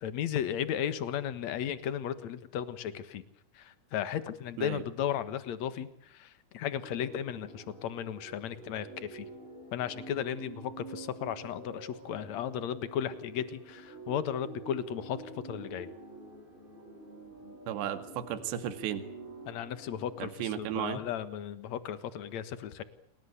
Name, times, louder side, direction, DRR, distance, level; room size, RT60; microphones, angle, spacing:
voice 1, 0.0-3.2 3.6-5.9 6.1-9.3 9.7-15.2 15.4-15.9 19.5-22.8, left 9 dB, 65° left, 13 dB, 1.8 m, -35 dB
sound 1, 6.8-21.1, right 2 dB, 10° right, 4.2 m, -48 dB
voice 2, 17.7-19.0 20.2-21.0, right 10 dB, 70° right, 9 dB, 4.0 m, -34 dB
29.0 x 19.5 x 8.3 m, 0.74 s
omnidirectional pair, 5.4 m